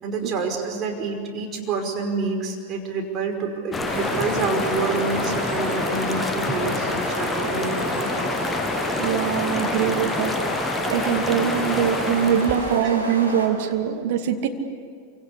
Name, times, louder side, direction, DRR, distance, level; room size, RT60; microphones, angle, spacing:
voice 1, 0.0-8.3 12.8-12.9, right 4 dB, 30° right, 1 dB, 5.5 m, -28 dB
Walking to River, 3.7-12.8, left 3 dB, 10° left, 1.0 m, -27 dB
sound 1, 3.8-13.5, right 1 dB, 90° right, 4.8 m, -30 dB
voice 2, 9.0-10.3 10.9-14.5, right 8 dB, 50° right, 4 dB, 2.4 m, -23 dB
27.5 x 26.0 x 8.4 m, 2.1 s
figure-of-eight pair, 90°, 0 cm